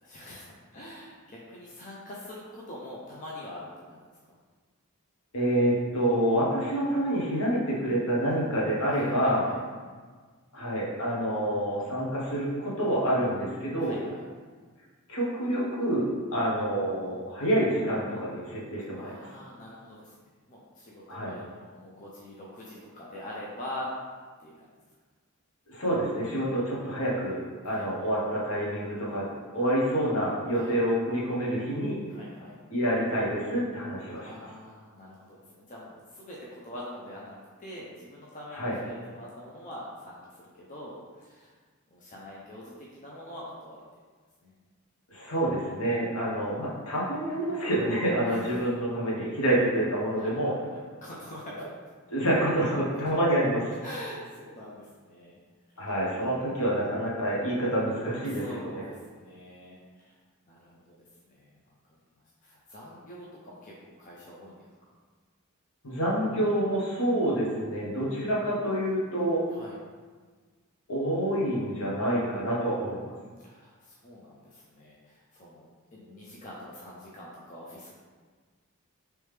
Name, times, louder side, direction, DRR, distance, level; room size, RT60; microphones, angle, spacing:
voice 1, 0.0-4.0 8.9-9.6 13.8-14.3 18.9-20.1 20.5-23.9 24.4-24.5 27.7-27.9 30.5-30.8 32.1-32.6 34.2-41.5 41.9-43.8 44.4-44.5 48.2-48.7 50.2-51.6 53.8-55.4 55.7-55.9 58.3-60.1 60.5-61.0 61.3-61.6 61.9-62.0 62.4-64.6 69.5-69.8 73.4-75.6 75.9-77.9, left 1 dB, 35° left, -5 dB, 0.5 m, -44 dB
voice 2, 5.3-9.4 10.5-14.0 15.1-19.1 21.1-21.3 25.7-27.4 27.6-32.0 32.7-34.3 38.5-38.8 45.1-50.5 52.1-53.7 55.8-58.4 58.7-58.8 65.8-69.4 70.9-73.0, right 1 dB, 70° left, -5 dB, 1.0 m, -27 dB
3.2 x 3.1 x 3.2 m, 1.5 s
head